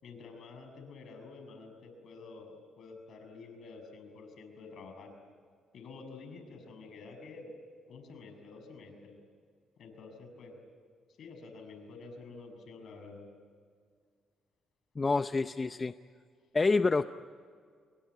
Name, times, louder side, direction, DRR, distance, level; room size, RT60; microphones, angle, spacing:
voice 1, 0.0-5.1 5.7-7.5 7.9-9.1 9.8-10.6 11.2-13.3, left 4 dB, 65° left, 6 dB, 6.4 m, -49 dB
voice 2, 15.0-15.9 16.5-17.0, left 3 dB, 30° left, 11 dB, 0.6 m, -27 dB
27.5 x 23.0 x 9.3 m, 2.1 s
cardioid pair, 90°, 0 cm